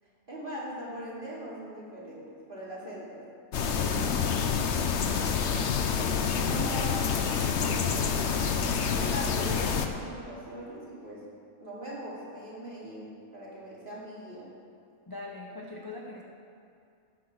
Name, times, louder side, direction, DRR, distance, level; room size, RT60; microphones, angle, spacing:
voice 1, 0.3-3.2 5.4-6.1 6.3-7.1 7.6-11.3 11.6-14.5, equal, 35° right, -7 dB, 3.1 m, -41 dB
sound 1, 3.5-9.9, left 6 dB, 60° left, 1.0 m, -27 dB
voice 2, 3.8-4.4 6.6-6.9 15.1-16.2, left 2 dB, 20° left, -2 dB, 0.7 m, -41 dB
16.0 x 6.2 x 6.0 m, 2.5 s
omnidirectional pair, 1.5 m